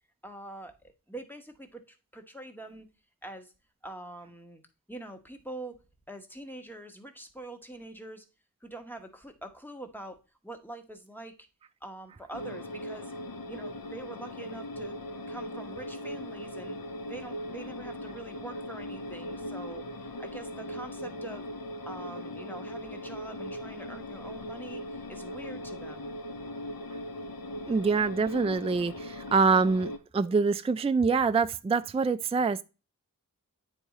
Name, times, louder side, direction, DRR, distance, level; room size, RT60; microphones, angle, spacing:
voice 1, 0.2-0.7 1.1-2.9 3.2-3.5 3.8-4.6 4.9-5.8 6.1-8.3 8.6-10.2 10.4-11.5 11.8-13.1 13.5-15.0 15.3-16.8 17.1-21.5 21.9-26.2, right 1 dB, 5° left, 1.2 m, -44 dB
sound 1, 12.3-30.0, left 1 dB, 85° left, 0.7 m, -39 dB
voice 2, 27.7-32.6, right 4 dB, 20° right, 0.3 m, -25 dB
9.2 x 3.6 x 4.1 m
wide cardioid pair, 40°, 34 cm